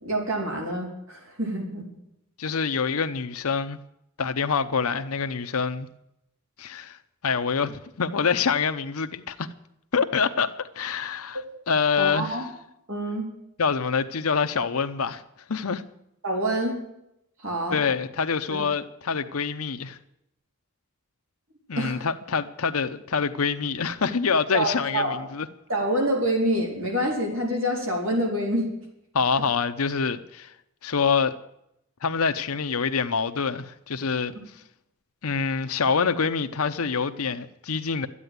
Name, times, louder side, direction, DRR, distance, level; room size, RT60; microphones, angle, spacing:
voice 1, 0.0-1.9 12.0-12.4 12.9-13.3 16.2-16.8 17.4-17.8 18.5-18.6 21.8-22.1 24.5-25.2 25.7-28.7, right 1 dB, 60° right, 4.3 m, -26 dB
voice 2, 2.4-3.8 4.2-5.9 6.6-7.0 7.2-9.5 9.9-11.4 11.7-12.4 13.6-15.2 15.5-15.8 17.7-20.0 21.7-25.5 29.1-30.5 30.8-31.4 32.0-34.3 35.2-38.1, left 5 dB, 80° left, 0.8 m, -26 dB
13.0 x 9.8 x 9.5 m
head